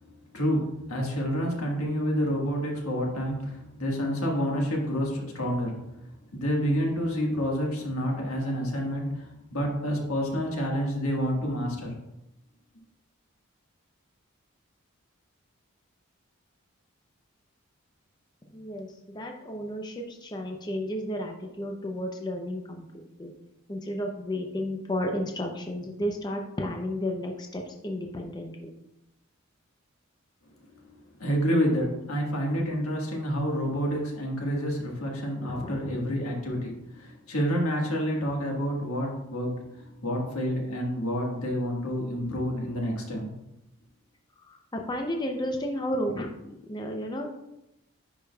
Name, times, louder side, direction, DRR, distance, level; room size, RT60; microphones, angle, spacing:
voice 1, 0.0-5.8 6.3-11.9 30.9-31.0 31.2-43.3, equal, 85° left, -1 dB, 1.6 m, -29 dB
voice 2, 18.5-23.3 23.7-28.7 35.4-36.2 44.5-47.3, left 1 dB, 20° left, 2 dB, 0.5 m, -33 dB
9.9 x 5.0 x 2.3 m, 0.90 s
head